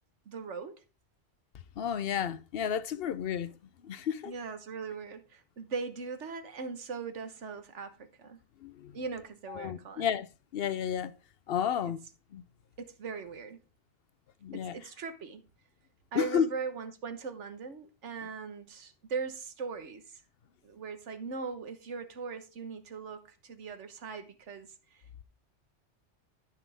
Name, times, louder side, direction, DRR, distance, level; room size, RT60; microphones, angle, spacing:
voice 1, 0.3-0.8 4.2-8.4 8.9-10.1 12.8-13.6 14.5-15.4 16.1-20.2 20.6-25.2, right 5 dB, 85° right, 1.5 m, -40 dB
voice 2, 1.8-3.5 3.8-4.3 8.6-8.9 9.5-10.3 10.5-11.1 11.5-12.0 12.3-12.4 14.4-14.8 16.1-16.5, left 8 dB, 60° left, 0.8 m, -31 dB
13.0 x 5.9 x 3.4 m
omnidirectional pair, 1.2 m